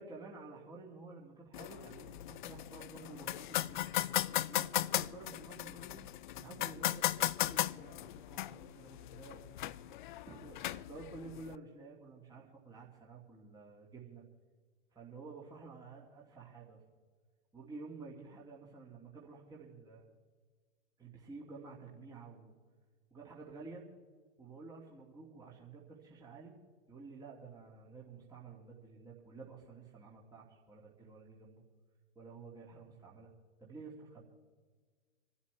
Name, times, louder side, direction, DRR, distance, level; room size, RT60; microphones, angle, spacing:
voice 1, 0.0-6.0 6.3-14.2 14.9-16.8 17.5-20.1 21.0-22.6 23.1-23.9 24.4-26.5 26.9-31.6 32.2-33.3 33.6-34.2, right 3 dB, 10° right, -3 dB, 2.6 m, -51 dB
sound 1, 1.5-11.6, left 14 dB, 45° left, 0.4 m, -37 dB
26.5 x 12.5 x 3.5 m, 1.5 s
figure-of-eight pair, 110°, 36 cm